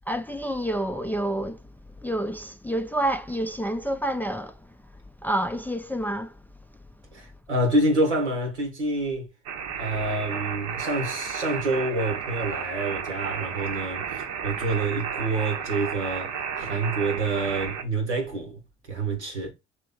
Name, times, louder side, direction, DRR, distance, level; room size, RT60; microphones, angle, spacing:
voice 1, 0.1-1.6 2.0-4.6 5.2-6.3, right 1 dB, 5° left, 0.3 m, -28 dB
voice 2, 7.1-9.3 9.8-18.6 18.9-19.5, right 2 dB, 90° right, 1.1 m, -27 dB
sound 1, 9.5-17.8, right 7 dB, 60° right, 0.8 m, -32 dB
3.1 x 3.0 x 3.5 m
figure-of-eight pair, 50°, 33 cm